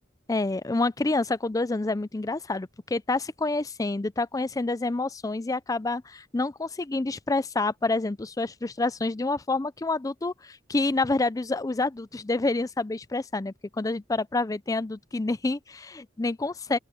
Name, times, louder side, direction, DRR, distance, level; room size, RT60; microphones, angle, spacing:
voice 1, 0.3-16.8, left 2 dB, 20° left, 0.4 m, -28 dB
open air
head